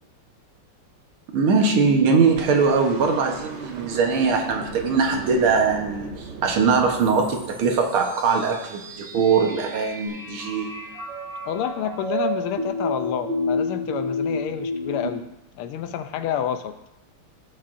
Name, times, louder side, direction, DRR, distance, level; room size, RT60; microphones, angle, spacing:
voice 1, 1.3-10.9, right 5 dB, 75° right, 2 dB, 2.0 m, -21 dB
sound 1, 2.4-8.5 10.1-10.2, right 4 dB, 60° right, 0.7 m, -38 dB
sound 2, 7.0-15.1, left 1 dB, 25° right, 2.5 m, -30 dB
voice 2, 11.4-15.3 15.6-16.8, left 9 dB, 85° left, 9 dB, 1.5 m, -29 dB
16.0 x 6.5 x 2.6 m, 0.90 s
omnidirectional pair, 2.4 m